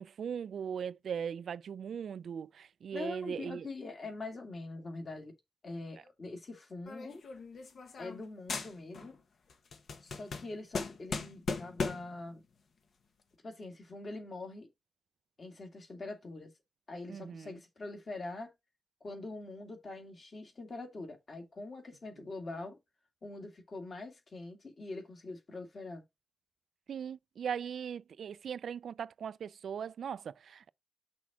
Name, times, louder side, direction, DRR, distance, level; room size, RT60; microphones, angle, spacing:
voice 1, 0.0-3.6 17.1-17.5 26.9-30.7, right 7 dB, 90° right, 0.3 m, -39 dB
voice 2, 2.9-5.3 5.6-7.2 8.0-9.2 10.0-12.4 13.4-14.7 15.4-16.5 16.9-18.5 19.0-22.8 23.2-26.0, left 2 dB, 45° left, 2.2 m, -43 dB
sound 1, 6.9-8.2 8.5-9.2 9.5-12.2, left 4 dB, 75° left, 1.2 m, -38 dB
6.1 x 3.5 x 6.0 m
wide cardioid pair, 135°, 0 cm